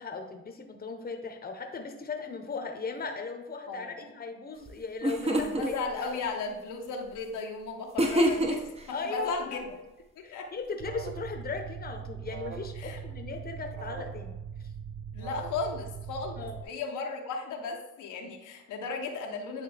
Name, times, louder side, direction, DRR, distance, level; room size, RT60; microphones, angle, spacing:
voice 1, 0.0-5.7 6.0-6.2 8.9-9.6 10.2-14.4 16.4-16.6, left 4 dB, 30° left, 4 dB, 1.0 m, -38 dB
voice 2, 3.6-4.1 5.3-8.7 9.1-9.7 10.3-10.5 12.8-13.0 15.1-19.6, left 4 dB, 85° left, 1 dB, 1.1 m, -35 dB
sound 1, 4.7-4.8 5.0-5.7 8.0-8.8, equal, 20° right, 0.9 m, -25 dB
Alarm, 10.8-16.6, right 7 dB, 40° right, 0.5 m, -40 dB
9.3 x 3.3 x 3.4 m, 0.98 s
cardioid pair, 90°, 30 cm